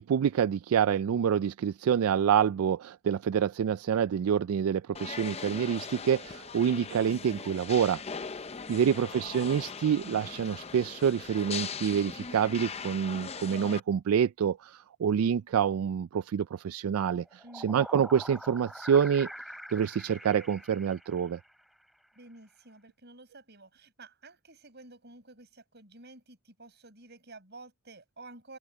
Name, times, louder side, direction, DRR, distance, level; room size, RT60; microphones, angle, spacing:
voice 1, 0.0-8.0 8.7-19.3 19.7-21.4, right 8 dB, 75° right, 0.3 m, -27 dB
sound 1, 4.9-13.8, left 5 dB, 30° left, 0.6 m, -40 dB
voice 2, 8.9-9.2 17.4-17.8 22.1-28.6, right 2 dB, 50° right, 7.2 m, -51 dB
sound 2, 17.3-21.7, equal, ahead, 3.0 m, -45 dB
open air
head